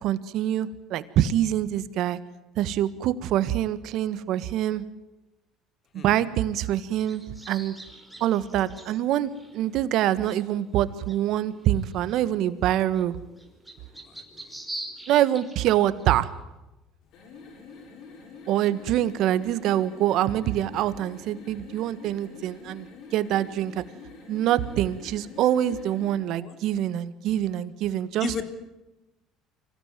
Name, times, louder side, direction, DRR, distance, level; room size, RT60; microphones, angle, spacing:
voice 1, 0.0-2.2 2.6-4.8 6.0-7.7 8.2-13.2 15.1-16.3 18.5-22.9 23.1-23.8 24.3-28.3, right 12 dB, 65° right, 14 dB, 1.5 m, -25 dB
sound 1, 6.9-16.3, right 1 dB, 5° right, 4.6 m, -45 dB
voice 2, 13.9-14.6 26.3-26.6 28.2-28.4, left 5 dB, 45° left, 9 dB, 3.2 m, -35 dB
sound 2, 17.0-26.2, left 4 dB, 65° left, 7.3 m, -46 dB
25.5 x 16.5 x 9.2 m, 0.99 s
supercardioid pair, 95°, 0 cm